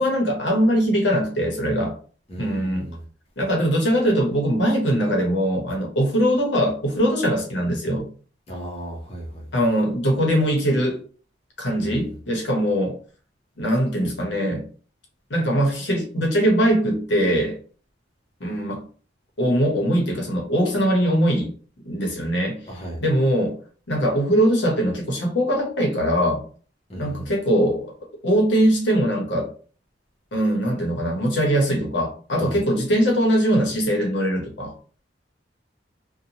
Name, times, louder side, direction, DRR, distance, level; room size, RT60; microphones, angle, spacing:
voice 1, 0.0-1.9 2.4-2.9 3.4-8.1 9.5-11.0 11.6-13.0 13.6-14.6 15.3-17.6 18.4-18.8 19.4-21.5 21.8-22.6 23.0-23.6 23.9-26.4 27.0-27.9 28.2-29.5 30.3-34.7, equal, 70° left, 1 dB, 0.9 m, -21 dB
voice 2, 2.3-3.0 8.5-9.5 11.8-12.0 22.7-23.0 26.9-27.3 32.4-32.6, right 1 dB, 35° left, -2 dB, 0.7 m, -35 dB
2.7 x 2.2 x 2.8 m, 0.40 s
head